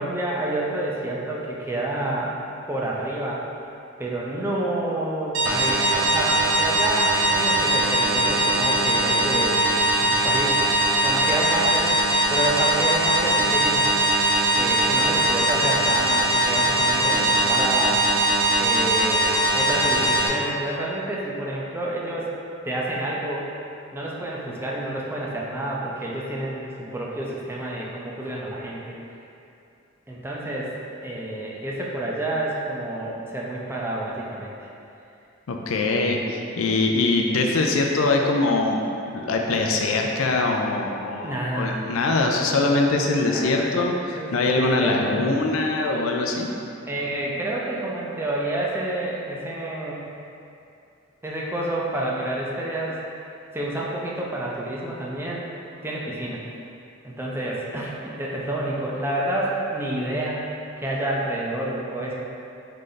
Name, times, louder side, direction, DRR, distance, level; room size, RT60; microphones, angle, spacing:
voice 1, 0.0-2.4 2.7-3.4 4.0-9.6 10.0-10.7 11.0-12.0 12.3-13.9 14.5-18.0 18.6-22.3 22.6-23.5 23.9-29.0 30.1-30.7 31.0-34.6 41.2-41.9 43.3-43.7 44.1-45.3 46.9-50.1 51.2-53.0 53.5-55.4 55.8-56.4 57.0-62.1, right 1 dB, 10° right, -4 dB, 0.4 m, -29 dB
sound 1, 5.3-20.3, right 1 dB, 80° right, 0.7 m, -21 dB
voice 2, 35.5-38.8 39.1-46.5, left 3 dB, 85° left, 1 dB, 0.4 m, -23 dB
3.8 x 3.2 x 3.9 m, 2.6 s
head